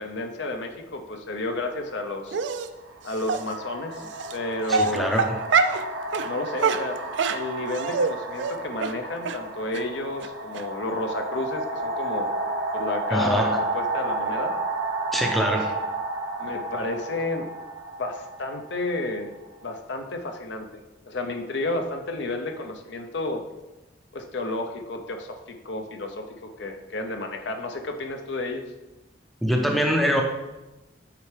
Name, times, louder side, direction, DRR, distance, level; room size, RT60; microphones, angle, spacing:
voice 1, 0.0-2.4 3.0-4.0 4.3-5.1 6.2-7.0 7.3-12.3 12.7-14.5 15.5-15.6 16.4-17.5 18.0-19.3 19.6-23.4 24.1-28.6, left 2 dB, 65° left, 5 dB, 0.7 m, -31 dB
sound 1, 1.7-1.9 2.8-19.5, right 2 dB, 85° right, 1.0 m, -32 dB
Dog, 2.3-2.7 3.3-3.4 4.2-4.3 4.7-5.8 6.1-6.3 6.6-8.1 8.4-8.5 8.8-8.9 9.3-9.4 9.7-9.8 10.2-10.3 10.5-10.6, right 5 dB, 65° right, 0.4 m, -24 dB
voice 2, 4.7-5.4 13.1-13.6 15.1-15.7 29.4-30.2, equal, ahead, 2 dB, 0.5 m, -24 dB
8.4 x 4.5 x 3.3 m, 1.1 s
head